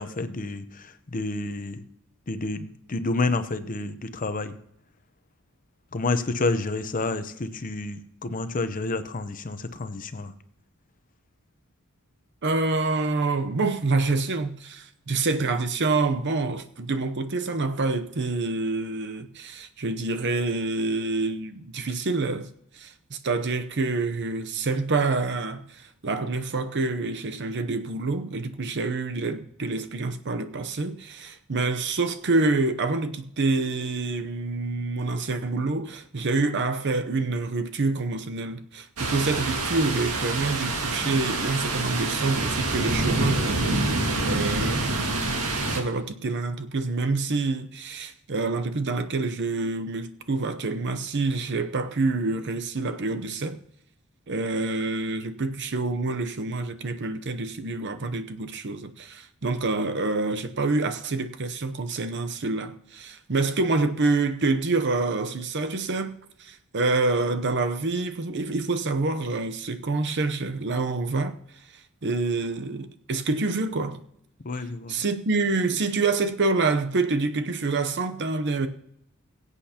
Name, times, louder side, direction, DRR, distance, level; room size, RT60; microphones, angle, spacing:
voice 1, 0.0-1.8 2.3-4.6 5.9-10.3 74.4-75.0, left 3 dB, 40° left, 0.7 m, -29 dB
voice 2, 12.4-22.5 22.7-45.0 45.7-53.6 54.3-71.4 72.0-74.0 74.9-78.7, right 3 dB, 50° right, 0.7 m, -27 dB
sound 1, 39.0-45.8, right 2 dB, 80° right, 1.9 m, -27 dB
22.5 x 8.3 x 2.9 m
head